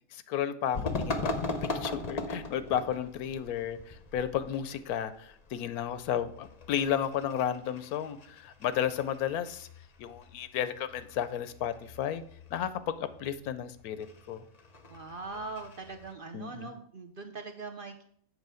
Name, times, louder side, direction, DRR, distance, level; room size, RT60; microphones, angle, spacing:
voice 1, 0.1-0.8 1.0-9.7 10.0-12.2 12.5-14.4 16.3-16.7, left 9 dB, 85° left, 13 dB, 1.1 m, -33 dB
sound 1, 0.7-16.1, left 2 dB, 35° left, 0.7 m, -40 dB
voice 2, 14.9-18.0, right 3 dB, 50° right, 6 dB, 0.7 m, -41 dB
8.1 x 4.3 x 6.9 m, 0.63 s
omnidirectional pair, 1.5 m